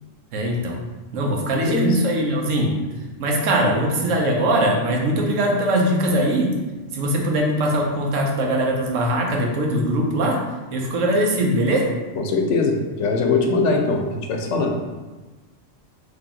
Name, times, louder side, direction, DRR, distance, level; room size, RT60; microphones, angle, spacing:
voice 1, 0.3-0.8 1.1-2.7 3.2-6.5 6.9-10.4 10.7-11.9, right 1 dB, 90° right, 0 dB, 1.1 m, -21 dB
voice 2, 1.5-2.0 12.2-14.7, left 3 dB, 75° left, 2 dB, 0.9 m, -21 dB
3.3 x 2.8 x 3.7 m, 1.2 s
omnidirectional pair, 1.3 m